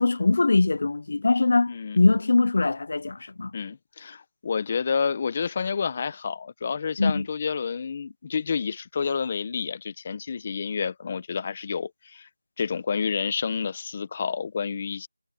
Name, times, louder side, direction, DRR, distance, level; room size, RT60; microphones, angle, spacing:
voice 1, 0.0-3.5 7.0-7.3, left 3 dB, 35° left, 0.7 m, -22 dB
voice 2, 1.7-2.0 3.5-12.3 12.6-15.1, left 6 dB, 20° left, 1.2 m, -29 dB
figure-of-eight pair, 175°, 0 cm